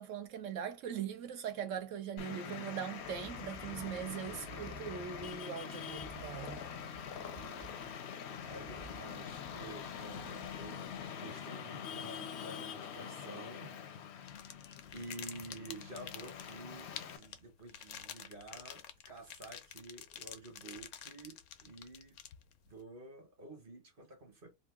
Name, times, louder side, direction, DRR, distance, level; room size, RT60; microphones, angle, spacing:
voice 1, 0.0-6.6, right 8 dB, 70° right, 0.9 m, -41 dB
Traffic noise roadway noise, 2.2-17.2, left 7 dB, 65° left, 0.7 m, -45 dB
sound 1, 3.0-11.1, right 3 dB, 5° right, 0.5 m, -56 dB
voice 2, 4.3-4.8 7.1-7.8 8.5-10.8 11.2-13.7 14.9-22.2 22.7-24.5, right 2 dB, 45° right, 1.0 m, -50 dB
sound 2, 14.2-22.7, left 10 dB, 85° left, 1.1 m, -49 dB
2.8 x 2.6 x 3.5 m
omnidirectional pair, 1.5 m